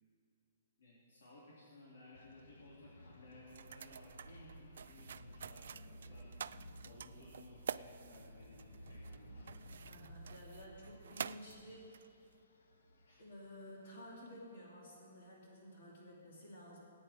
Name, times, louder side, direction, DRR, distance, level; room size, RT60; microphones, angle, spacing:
voice 1, 0.8-6.3 6.8-9.5 13.1-13.2, left 2 dB, 85° left, -7 dB, 3.3 m, -59 dB
sound 1, 2.1-14.4, left 1 dB, 70° left, 1.3 m, -57 dB
sound 2, 3.5-12.4, right 7 dB, 60° right, 0.3 m, -49 dB
voice 2, 9.8-11.9 13.2-16.8, left 1 dB, 50° left, -4 dB, 2.9 m, -53 dB
19.5 x 9.1 x 4.6 m, 2.7 s
hypercardioid pair, 175°, 0 cm